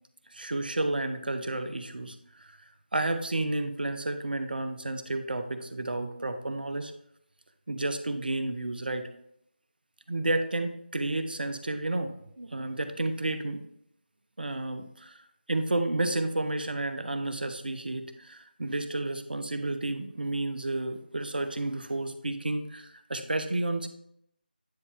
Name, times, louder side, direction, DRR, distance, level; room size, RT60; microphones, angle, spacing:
voice 1, 0.3-2.6 2.9-6.9 7.7-9.1 10.1-13.6 14.4-15.2 15.5-23.9, right 2 dB, 65° right, 9 dB, 0.8 m, -31 dB
9.7 x 4.1 x 3.4 m, 0.74 s
figure-of-eight pair, 165°, 6 cm